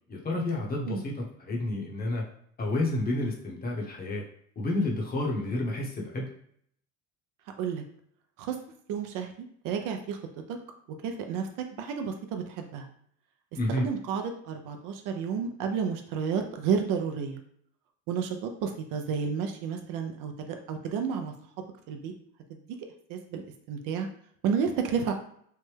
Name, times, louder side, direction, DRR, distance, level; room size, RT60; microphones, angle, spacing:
voice 1, 0.1-2.2 2.6-4.2 4.6-6.3 13.6-13.9, left 2 dB, 25° left, -2 dB, 0.9 m, -30 dB
voice 2, 8.9-10.2 10.5-10.6 11.0-11.5 11.8-12.9 13.8-17.4 18.1-21.3 21.9-22.1 23.1-23.4 23.7-24.1 24.4-25.1, right 6 dB, 60° right, 5 dB, 0.5 m, -31 dB
3.3 x 2.1 x 3.3 m, 0.66 s
supercardioid pair, 105°, 37 cm